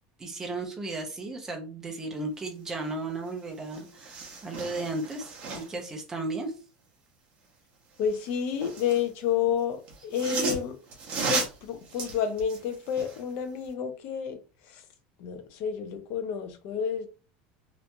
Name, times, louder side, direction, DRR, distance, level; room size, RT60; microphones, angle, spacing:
voice 1, 0.2-6.5, right 2 dB, 15° right, 0.6 m, -35 dB
sound 1, 3.3-3.4 3.6-5.9 8.0-9.1 9.9-13.2 13.6-13.7, right 4 dB, 35° right, 0.9 m, -35 dB
voice 2, 8.0-10.8 11.3-14.4 14.7-14.8 15.2-17.1, left 8 dB, 55° left, 0.6 m, -30 dB
2.9 x 2.6 x 2.2 m
cardioid pair, 160°, 4 cm